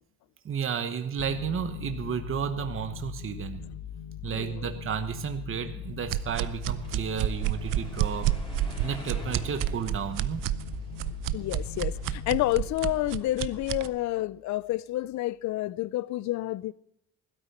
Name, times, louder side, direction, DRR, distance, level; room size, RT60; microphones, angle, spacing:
voice 1, 0.4-3.7 4.2-8.3 8.8-10.5, right 7 dB, 40° right, 1.1 m, -32 dB
sound 1, 1.2-14.4, left 9 dB, 85° left, 1.0 m, -40 dB
voice 2, 4.3-4.7 11.3-16.7, left 16 dB, 60° left, 0.5 m, -29 dB
sound 2, 6.1-13.9, right 14 dB, 80° right, 0.6 m, -30 dB
sound 3, 6.4-12.4, left 3 dB, 15° left, 3.3 m, -48 dB
16.0 x 12.5 x 4.3 m
cardioid pair, 100°, 32 cm